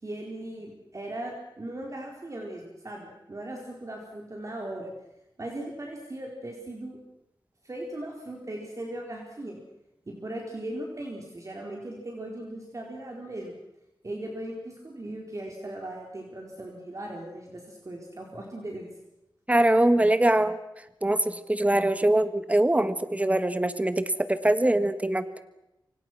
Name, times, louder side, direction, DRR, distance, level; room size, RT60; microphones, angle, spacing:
voice 1, 0.0-4.9 5.4-7.0 7.6-9.6 10.1-13.5 14.0-18.9, right 1 dB, 40° right, 0 dB, 4.4 m, -38 dB
voice 2, 19.5-20.6 21.0-25.4, right 1 dB, 15° right, 12 dB, 1.6 m, -23 dB
27.5 x 25.5 x 6.2 m, 0.90 s
wide cardioid pair, 95°, 8 cm